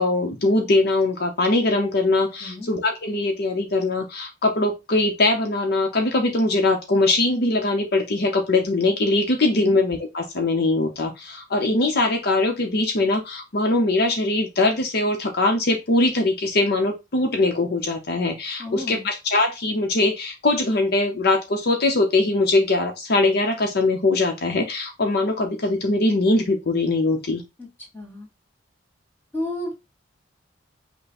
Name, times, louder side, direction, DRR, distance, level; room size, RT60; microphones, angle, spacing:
voice 1, 0.0-27.4, left 2 dB, 60° left, 3 dB, 0.8 m, -21 dB
voice 2, 18.6-19.1 27.6-27.7 27.9-28.3 29.3-29.7, left 1 dB, 10° left, 0 dB, 2.1 m, -32 dB
5.5 x 2.2 x 4.1 m, 0.23 s
head